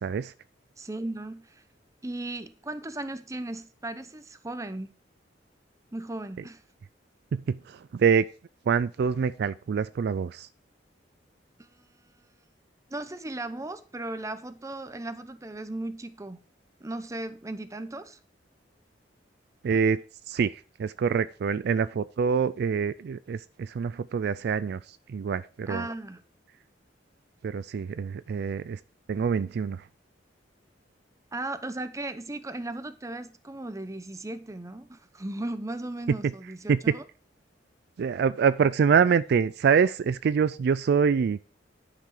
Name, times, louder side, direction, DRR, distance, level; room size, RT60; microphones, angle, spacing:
voice 1, 0.0-0.3 7.3-8.2 8.7-10.5 19.6-20.0 20.3-25.9 27.4-28.8 29.1-29.9 36.1-36.3 36.7-37.0 38.0-41.4, right 6 dB, 60° right, 0.3 m, -25 dB
voice 2, 0.8-1.6 2.0-4.9 5.9-6.6 11.6-12.1 12.9-16.4 16.8-18.2 25.7-26.2 31.3-37.0, right 2 dB, 15° right, 0.8 m, -36 dB
10.5 x 6.0 x 4.8 m
head